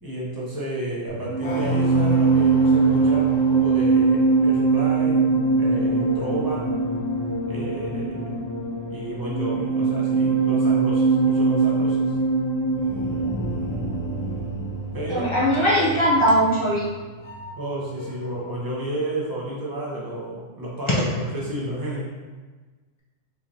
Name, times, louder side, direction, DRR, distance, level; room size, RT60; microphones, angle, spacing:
voice 1, 0.0-5.2 5.5-6.7 7.5-8.4 8.9-12.1 14.9-15.3 17.6-22.1, right 1 dB, 20° right, -5 dB, 0.6 m, -31 dB
sound 1, 1.1-17.7 18.0-18.3, right 4 dB, 70° left, 0.9 m, -22 dB
voice 2, 15.1-16.9 20.9-21.0, equal, 55° left, -7 dB, 0.3 m, -20 dB
3.6 x 3.1 x 2.7 m, 1.3 s
omnidirectional pair, 1.5 m